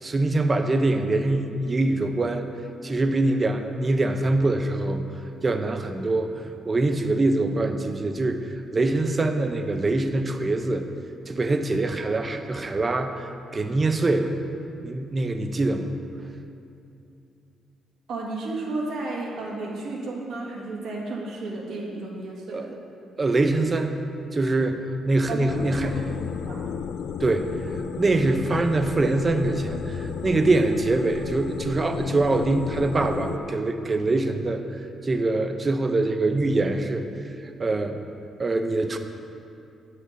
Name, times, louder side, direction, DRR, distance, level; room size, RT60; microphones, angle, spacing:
voice 1, 0.0-2.5 2.8-5.0 5.4-6.3 6.6-10.8 11.3-14.3 14.8-16.0 22.5-22.7 23.2-24.0 24.3-25.9 27.2-27.5 28.0-37.1 37.6-38.0 38.4-39.0, right 2 dB, 25° right, 7 dB, 0.5 m, -24 dB
voice 2, 18.1-22.7 25.3-26.1 26.4-26.6, right 2 dB, 70° right, -2 dB, 1.6 m, -33 dB
sound 1, 25.5-33.4, left 7 dB, 80° left, 0.3 m, -33 dB
8.3 x 5.7 x 5.9 m, 2.6 s
cardioid pair, 125°, 0 cm